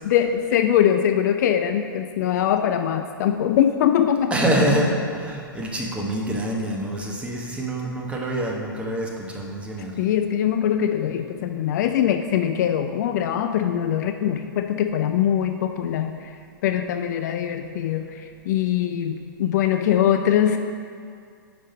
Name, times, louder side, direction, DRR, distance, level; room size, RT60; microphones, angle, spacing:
voice 1, 0.0-4.3 10.0-16.2 16.6-18.1 18.5-20.6, left 10 dB, 50° left, 7 dB, 0.4 m, -22 dB
voice 2, 4.3-9.9, right 1 dB, 10° right, -2 dB, 0.9 m, -25 dB
5.2 x 5.2 x 5.4 m, 2.2 s
hypercardioid pair, 120°, 12 cm